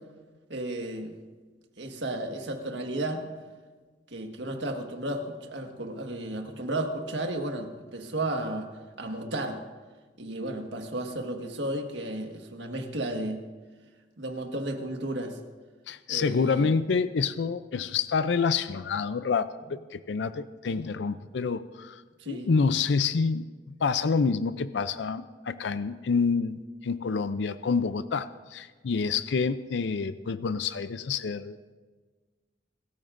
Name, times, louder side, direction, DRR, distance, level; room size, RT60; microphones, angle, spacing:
voice 1, 0.5-1.1 1.8-3.3 4.1-8.7 9.0-9.6 10.2-13.4 14.2-15.4 16.1-16.7 22.2-22.5, right 1 dB, 75° right, 3 dB, 1.6 m, -33 dB
voice 2, 15.9-22.0 22.3-23.4 23.8-31.7, left 5 dB, 70° left, 13 dB, 0.5 m, -28 dB
27.0 x 14.0 x 2.6 m, 1.4 s
head